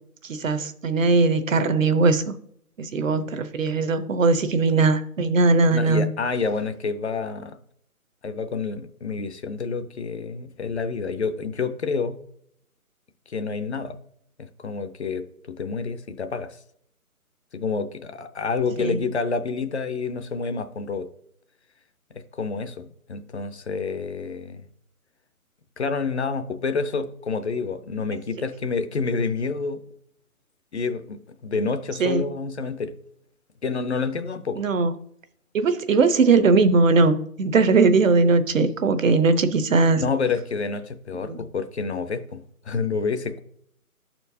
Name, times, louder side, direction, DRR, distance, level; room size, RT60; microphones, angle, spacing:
voice 1, 0.3-2.4 2.8-6.1 18.8-19.0 32.0-32.3 34.6-34.9 35.5-40.0 41.2-41.4, right 3 dB, 60° right, 11 dB, 0.8 m, -20 dB
voice 2, 5.7-7.6 8.2-12.2 13.3-14.0 14.4-16.6 17.5-21.1 22.3-24.6 25.8-29.8 30.7-32.9 33.6-34.6 40.0-43.4, left 4 dB, 50° left, 10 dB, 0.6 m, -28 dB
11.5 x 4.4 x 2.7 m, 0.69 s
hypercardioid pair, 165°, 44 cm